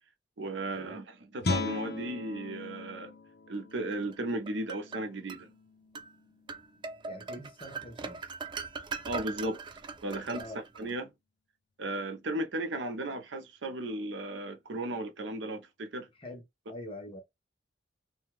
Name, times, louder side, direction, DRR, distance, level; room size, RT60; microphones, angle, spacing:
voice 1, 0.4-3.1 3.5-5.5 9.0-9.6 10.0-10.5 10.7-11.1 11.8-16.1, right 1 dB, 75° right, 0.7 m, -35 dB
Guitar, 1.4-7.0, left 3 dB, 60° left, 0.6 m, -38 dB
Tense Guitar, 4.1-5.4 5.9-6.1 6.5-10.9, right 4 dB, 25° right, 0.4 m, -41 dB
voice 2, 7.1-8.3 10.4-10.6 16.2-16.4 16.7-17.2, left 1 dB, 30° left, 0.9 m, -44 dB
2.7 x 2.3 x 3.0 m
head